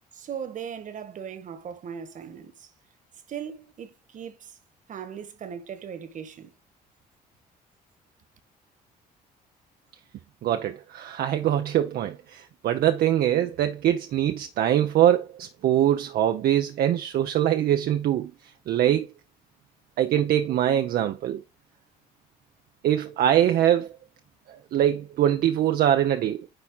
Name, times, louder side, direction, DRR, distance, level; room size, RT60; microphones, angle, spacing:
voice 1, 0.1-2.7 3.3-4.6 4.9-6.5, right 8 dB, 50° right, 1.6 m, -38 dB
voice 2, 10.4-18.3 18.7-19.1 20.0-21.4 22.8-23.9 24.7-26.5, right 11 dB, 65° right, 0.8 m, -23 dB
10.0 x 4.3 x 3.9 m
cardioid pair, 110°, 17 cm